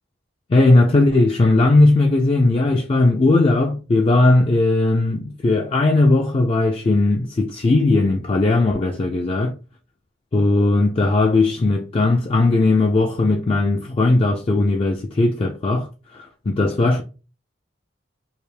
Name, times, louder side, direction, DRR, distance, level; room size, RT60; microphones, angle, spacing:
voice 1, 0.5-9.5 10.3-17.0, left 2 dB, 30° left, 0.3 m, -18 dB
3.3 x 2.5 x 3.2 m
head